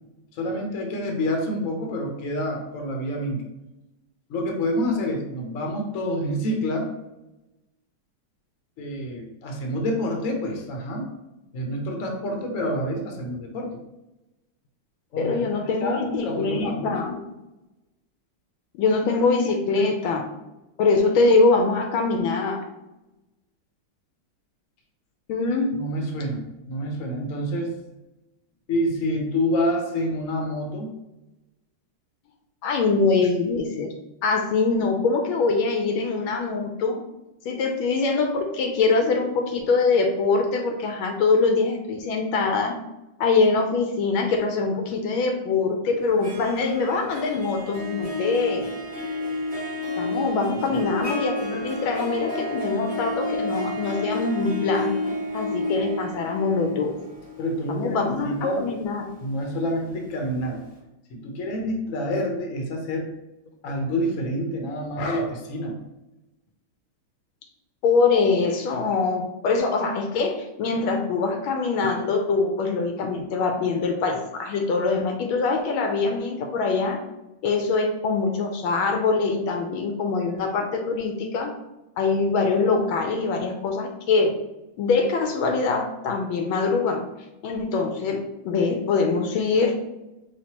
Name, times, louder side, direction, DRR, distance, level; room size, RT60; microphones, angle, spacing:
voice 1, 0.3-3.5 4.3-6.9 8.8-11.1 11.5-13.8 15.1-17.0 25.7-26.4 26.7-27.8 28.7-30.9 50.7-50.8 57.4-58.6 59.2-60.6 61.1-63.1 63.6-65.8, equal, 55° left, 1 dB, 0.9 m, -27 dB
voice 2, 15.2-17.2 18.8-20.3 20.8-22.7 25.3-25.7 32.6-33.9 34.2-37.0 37.4-42.7 43.2-48.7 50.0-55.0 55.3-57.0 57.7-59.1 67.8-77.0 77.4-81.5 82.0-84.3 84.8-87.0 87.4-89.7, left 4 dB, 75° left, 3 dB, 1.3 m, -23 dB
Harp, 46.0-60.0, left 1 dB, 10° right, 0.4 m, -31 dB
5.1 x 3.2 x 2.9 m, 0.97 s
omnidirectional pair, 2.4 m